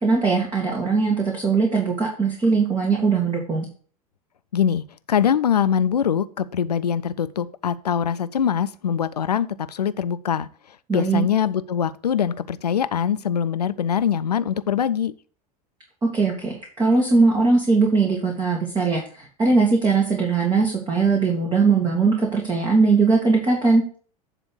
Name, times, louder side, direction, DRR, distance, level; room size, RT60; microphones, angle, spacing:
voice 1, 0.0-3.7 10.9-11.3 16.0-23.8, right 4 dB, 20° right, 2.2 m, -20 dB
voice 2, 4.5-10.5 10.9-15.1, left 8 dB, 85° left, 0.5 m, -23 dB
9.9 x 3.5 x 6.2 m
figure-of-eight pair, 85°, 20 cm